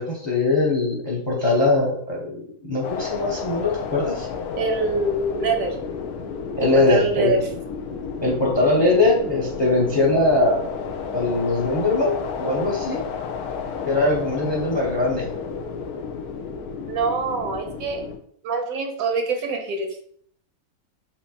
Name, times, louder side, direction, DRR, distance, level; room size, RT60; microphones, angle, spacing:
voice 1, 0.0-4.3 6.6-7.3 8.2-10.6 11.1-13.0 13.8-15.3, left 2 dB, 30° left, -2 dB, 0.6 m, -21 dB
sound 1, 2.8-18.2, left 6 dB, 90° left, 1.1 m, -32 dB
voice 2, 4.6-5.8 6.6-7.4 16.9-18.1 18.4-19.9, right 3 dB, 75° right, 5 dB, 1.0 m, -24 dB
4.4 x 2.7 x 2.8 m, 0.62 s
omnidirectional pair, 1.5 m